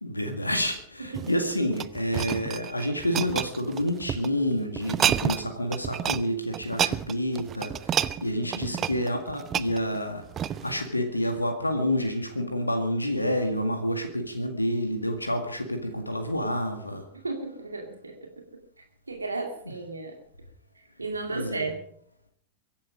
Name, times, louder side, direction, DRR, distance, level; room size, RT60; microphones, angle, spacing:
voice 1, 0.0-17.1 21.3-21.7, equal, 85° left, 2.0 m, -29 dB
sound 1, 1.0-4.3 4.8-5.5 5.7-6.2 6.5-10.8 11.4-11.5, right 9 dB, 25° right, 0.7 m, -29 dB
voice 2, 8.4-8.8 17.2-18.1 19.1-20.2 21.0-21.8, right 3 dB, 80° right, 2.4 m, -34 dB
23.0 x 11.5 x 5.1 m
figure-of-eight pair, 90°, 0 cm